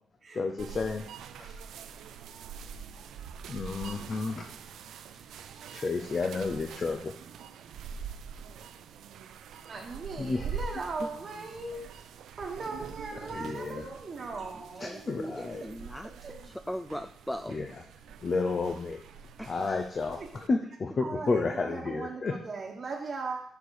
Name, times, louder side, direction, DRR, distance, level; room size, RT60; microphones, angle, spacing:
voice 1, 0.3-1.1 1.4-1.6 3.5-4.4 5.7-7.2 9.5-9.7 10.2-10.7 13.2-13.9 14.8-15.7 17.5-17.8 18.2-19.0 19.4-22.3, left 4 dB, 40° left, 4 dB, 0.7 m, -31 dB
sound 1, 0.6-20.5, right 6 dB, 80° right, 0.5 m, -44 dB
voice 2, 4.8-5.6 14.8-16.3 16.7-17.5 19.4-19.8, equal, 5° left, 7 dB, 0.4 m, -40 dB
voice 3, 9.7-12.1 12.4-15.0 16.0-16.4 20.1-20.3 21.0-23.4, right 3 dB, 40° right, -3 dB, 1.3 m, -38 dB
6.9 x 6.6 x 4.8 m, 0.63 s
cardioid pair, 105°, 0 cm